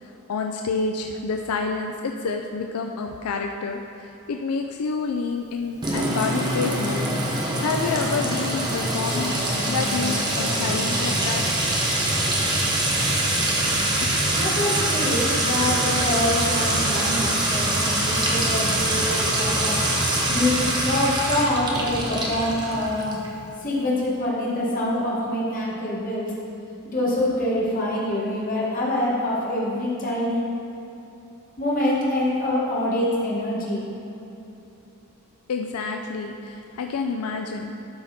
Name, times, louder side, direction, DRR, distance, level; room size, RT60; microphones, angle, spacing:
voice 1, 0.0-11.4 14.0-14.1 35.5-37.7, left 4 dB, 80° left, 3 dB, 0.4 m, -28 dB
Sink (filling or washing) / Trickle dribble / Fill (with liquid), 5.8-23.3, right 1 dB, 20° right, 0.8 m, -24 dB
voice 2, 14.3-19.8 20.3-23.2 23.6-26.3 26.9-30.5 31.6-33.9, left 1 dB, 40° left, -6 dB, 1.6 m, -25 dB
11.5 x 4.1 x 4.3 m, 2.9 s
head